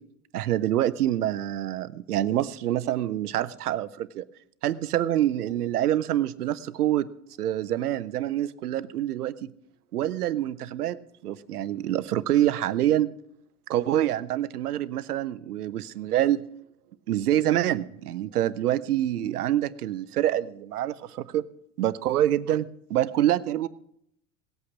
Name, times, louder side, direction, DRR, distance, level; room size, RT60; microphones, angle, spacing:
voice 1, 0.3-4.3 4.6-7.1 7.4-9.3 9.9-11.0 11.2-13.1 13.7-16.4 17.1-21.4 21.8-23.7, right 12 dB, 80° right, 17 dB, 0.8 m, -26 dB
17.5 x 8.6 x 6.0 m, 0.71 s
hypercardioid pair, 80°, 45 cm